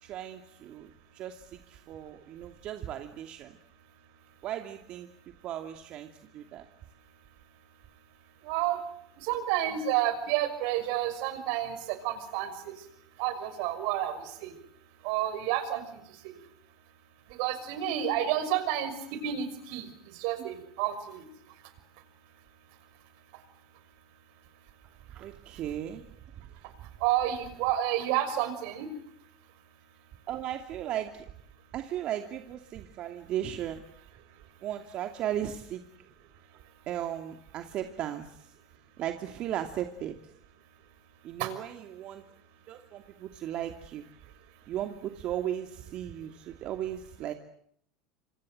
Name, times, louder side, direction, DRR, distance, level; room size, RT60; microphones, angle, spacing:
voice 1, 0.0-3.6 4.4-6.7 20.4-20.5 25.1-26.1 30.3-31.3 31.7-33.8 34.6-35.8 36.9-38.5 39.0-40.2 41.2-42.2 42.7-44.1 44.7-47.3, right 11 dB, 50° right, 5 dB, 2.6 m, -36 dB
voice 2, 8.4-8.8 9.2-12.5 13.2-14.5 15.0-16.3 17.4-18.9 19.2-19.9 20.2-21.2 27.0-28.9 41.4-41.5, right 11 dB, 65° right, 11 dB, 6.0 m, -30 dB
27.5 x 26.0 x 7.8 m, 0.71 s
hypercardioid pair, 95°, 2 cm